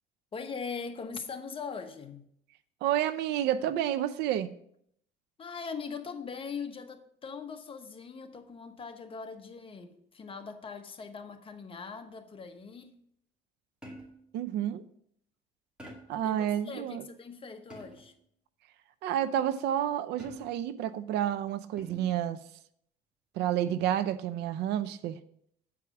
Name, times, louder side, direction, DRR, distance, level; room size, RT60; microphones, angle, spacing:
voice 1, 0.3-2.3 5.4-13.0 16.2-16.4 16.6-18.1, left 5 dB, 30° left, 1.0 m, -41 dB
voice 2, 2.8-4.5 14.3-14.8 16.1-17.0 19.0-22.4 23.4-25.2, right 11 dB, 85° right, 0.5 m, -30 dB
sound 1, 13.8-14.3 15.8-16.3 17.7-18.2 20.2-20.8 21.8-22.2 23.7-24.0, right 1 dB, 5° right, 2.2 m, -48 dB
8.2 x 4.8 x 5.9 m
cardioid pair, 110°, 17 cm